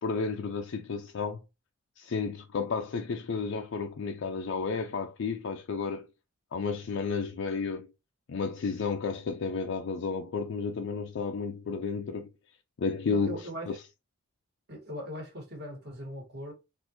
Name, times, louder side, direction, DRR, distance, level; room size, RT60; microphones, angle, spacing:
voice 1, 0.0-1.4 2.0-6.0 6.5-7.9 8.3-12.3 12.8-13.8, left 5 dB, 60° left, 0.4 m, -32 dB
voice 2, 13.1-13.8 14.7-16.5, equal, 50° right, 1.8 m, -40 dB
4.2 x 2.5 x 2.9 m
head